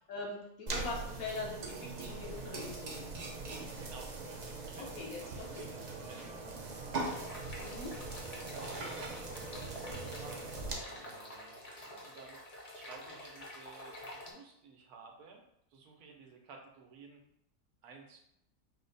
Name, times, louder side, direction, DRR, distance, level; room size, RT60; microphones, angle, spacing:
voice 1, 0.1-3.3 4.8-5.7 7.6-7.9, left 3 dB, 70° left, -1 dB, 1.3 m, -42 dB
sound 1, 0.7-10.7, right 3 dB, 70° right, 0.4 m, -41 dB
voice 2, 3.8-7.4 8.5-9.2 10.0-12.4 12.7-15.4 15.7-17.2 17.8-18.2, right 4 dB, 90° right, 2 dB, 1.2 m, -54 dB
Bowed string instrument, 5.6-12.4, right 2 dB, 50° right, 0.7 m, -59 dB
sound 2, 7.0-14.3, left 1 dB, 35° left, 0.6 m, -48 dB
4.8 x 2.1 x 3.9 m, 0.75 s
omnidirectional pair, 1.6 m